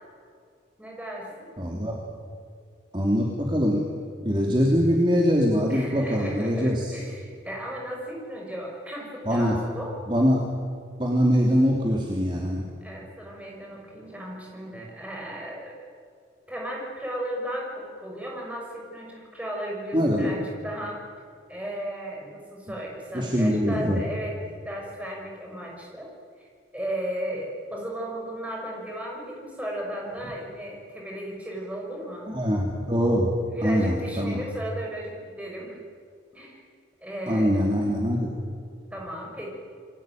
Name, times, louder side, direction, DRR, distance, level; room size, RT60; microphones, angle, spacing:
voice 1, 0.8-1.5 5.7-10.0 12.8-15.7 16.5-21.0 21.5-24.3 24.6-26.1 26.7-32.3 33.5-35.8 36.3-36.6 37.0-37.6 38.9-39.6, equal, 5° right, -1 dB, 6.2 m, -35 dB
voice 2, 1.6-2.0 2.9-3.8 4.2-6.9 9.2-9.5 10.1-10.4 11.0-12.6 19.9-20.3 23.1-24.0 32.3-33.3 33.6-34.4 37.3-38.3, equal, 25° right, -1 dB, 3.1 m, -23 dB
28.5 x 22.0 x 9.3 m, 2.2 s
head